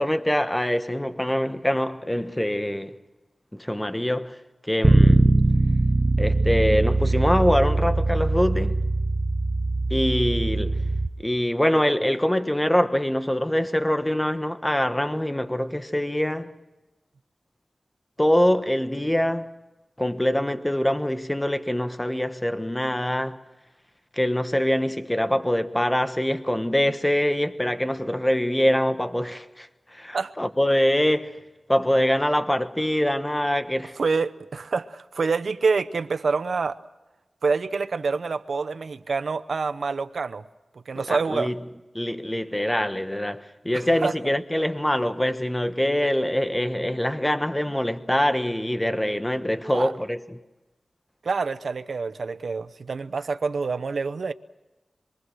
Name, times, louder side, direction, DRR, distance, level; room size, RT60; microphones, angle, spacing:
voice 1, 0.0-2.9 3.5-4.4 4.7-5.3 6.2-8.8 9.9-10.8 11.2-16.5 18.2-19.5 20.0-23.4 24.1-31.4 31.7-33.9 41.1-41.6 41.9-50.4, left 1 dB, 10° left, 1.3 m, -24 dB
Bass guitar, 4.8-11.1, right 2 dB, 20° right, 1.2 m, -21 dB
voice 2, 34.0-36.8 37.4-40.4 40.9-41.5 43.7-44.3 49.7-49.9 51.2-54.3, right 4 dB, 75° right, 0.9 m, -27 dB
26.5 x 23.5 x 6.4 m
wide cardioid pair, 75°, 0 cm